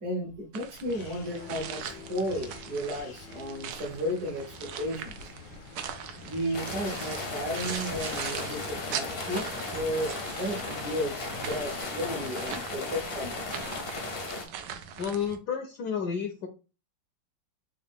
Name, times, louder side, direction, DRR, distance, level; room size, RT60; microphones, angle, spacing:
voice 1, 0.0-5.3 6.2-9.5 9.7-13.4, equal, 60° right, -1 dB, 1.3 m, -34 dB
sound 1, 0.5-15.4, right 7 dB, 75° right, 1.0 m, -41 dB
sound 2, 0.9-11.8, left 6 dB, 85° left, 1.5 m, -48 dB
sound 3, 6.5-14.5, left 3 dB, 55° left, 0.6 m, -36 dB
voice 2, 15.0-16.5, left 7 dB, 70° left, 4 dB, 1.0 m, -31 dB
3.9 x 2.4 x 3.4 m, 0.32 s
omnidirectional pair, 2.2 m